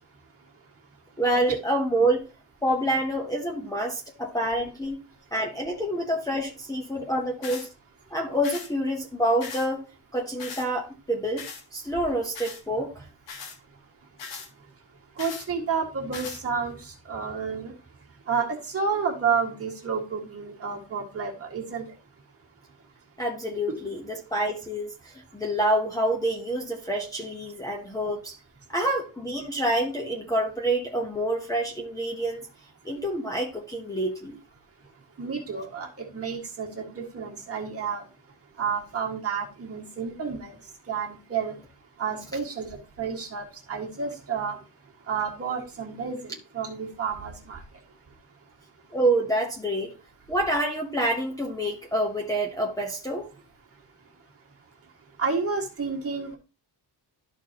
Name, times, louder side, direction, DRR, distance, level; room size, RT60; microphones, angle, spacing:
voice 1, 1.2-2.3 2.6-5.0 5.3-7.7 8.1-9.8 10.1-13.1 23.2-28.4 28.7-32.5 32.8-34.4 48.9-49.9 50.3-53.3, right 1 dB, 10° left, 0.9 m, -27 dB
sound 1, 7.4-7.7 8.4-8.7 9.4-9.7 10.4-10.7 11.4-11.6 12.3-12.6 13.3-13.6 14.2-14.5 15.2-15.5 16.1-16.4, left 5 dB, 85° left, 1.6 m, -39 dB
voice 2, 15.2-16.7 17.1-17.7 18.3-18.5 18.7-21.8 35.2-35.9 36.1-36.7 37.0-38.0 38.6-40.5 40.9-41.5 42.0-42.7 43.0-43.4 43.7-44.6 45.1-46.2 46.5-47.6 55.2-56.4, right 5 dB, 35° right, 1.9 m, -30 dB
12.5 x 4.5 x 2.9 m
wide cardioid pair, 175°, 43 cm